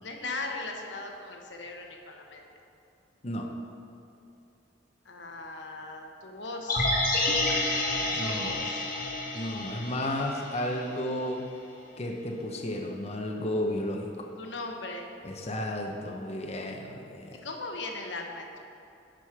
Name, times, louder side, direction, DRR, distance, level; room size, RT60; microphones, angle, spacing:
voice 1, 0.0-2.4 5.0-6.9 8.0-8.9 14.4-15.1 17.4-18.6, left 2 dB, 90° left, 2 dB, 1.2 m, -38 dB
sound 1, 6.7-10.9 11.2-11.3, left 2 dB, 55° left, 1.3 m, -29 dB
voice 2, 8.1-8.5 9.3-11.5 12.0-14.3 15.2-17.4, left 1 dB, 35° left, 1 dB, 0.8 m, -33 dB
11.0 x 5.2 x 5.9 m, 2.6 s
head